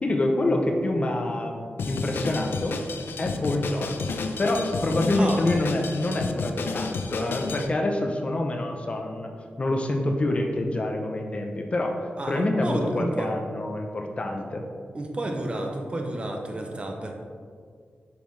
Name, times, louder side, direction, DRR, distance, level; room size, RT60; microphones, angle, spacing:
voice 1, 0.0-2.8 3.2-4.1 4.4-9.3 9.6-14.7, left 1 dB, 35° left, 2 dB, 0.6 m, -26 dB
Drum kit, 1.8-7.7, left 4 dB, 80° left, 0.5 m, -31 dB
voice 2, 5.1-5.4 12.2-13.3 14.9-17.1, right 1 dB, 30° right, 2 dB, 0.7 m, -30 dB
6.9 x 6.2 x 3.2 m, 2.1 s
wide cardioid pair, 155°, 4 cm